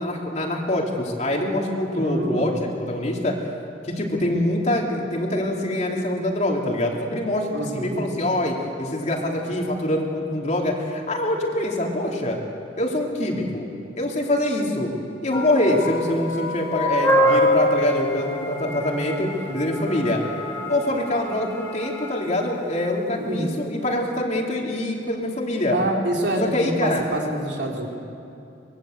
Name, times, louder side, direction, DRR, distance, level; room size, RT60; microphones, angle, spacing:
voice 1, 0.0-3.4 3.8-12.4 12.8-13.7 14.0-14.9 15.2-20.2 20.7-25.7 26.4-27.0, left 1 dB, 40° left, 0 dB, 3.1 m, -24 dB
voice 2, 1.9-2.6 7.5-8.0 23.2-23.5 25.7-27.9, right 1 dB, 70° right, 0 dB, 3.7 m, -26 dB
sound 1, 15.3-22.8, left 1 dB, 15° left, 3.9 m, -25 dB
24.0 x 21.0 x 8.0 m, 2.7 s
head